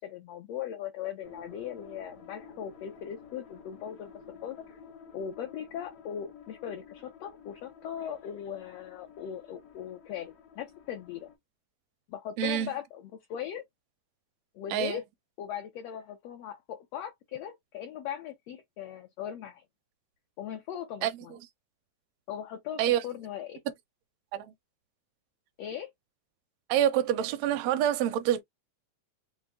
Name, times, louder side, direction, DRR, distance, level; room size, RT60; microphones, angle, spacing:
voice 1, 0.0-4.8 5.1-11.3 12.1-13.6 14.6-15.1 15.4-19.6 20.4-21.4 22.3-23.6 25.6-25.9, left 9 dB, 75° left, 1.6 m, -39 dB
sound 1, 1.2-11.3, left 5 dB, 55° left, 1.1 m, -52 dB
voice 2, 12.4-12.7 14.7-15.0 21.0-21.1 22.8-23.0 24.3-24.5 26.7-28.4, right 11 dB, 75° right, 1.7 m, -26 dB
5.3 x 2.1 x 3.5 m
omnidirectional pair, 3.4 m